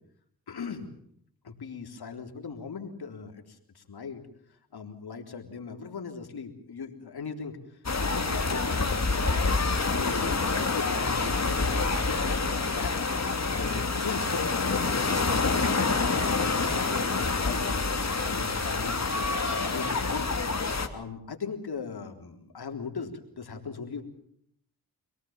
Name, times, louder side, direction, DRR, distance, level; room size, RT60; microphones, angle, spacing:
voice 1, 0.5-0.9 1.4-4.2 4.7-19.3 19.6-23.1 23.4-24.0, left 5 dB, 70° left, 4 dB, 3.8 m, -40 dB
sound 1, 7.8-20.9, left 3 dB, 40° left, 2.9 m, -27 dB
26.0 x 18.0 x 7.4 m, 0.70 s
cardioid pair, 45°, 39 cm